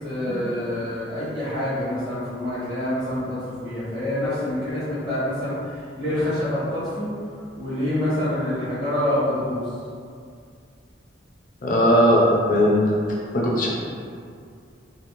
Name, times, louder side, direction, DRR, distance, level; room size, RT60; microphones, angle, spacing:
voice 1, 0.0-7.1 7.6-9.7, left 1 dB, 25° right, -13 dB, 0.9 m, -26 dB
voice 2, 11.6-12.8 13.3-13.7, equal, 45° left, -4 dB, 0.4 m, -18 dB
2.5 x 2.0 x 2.9 m, 2.3 s
head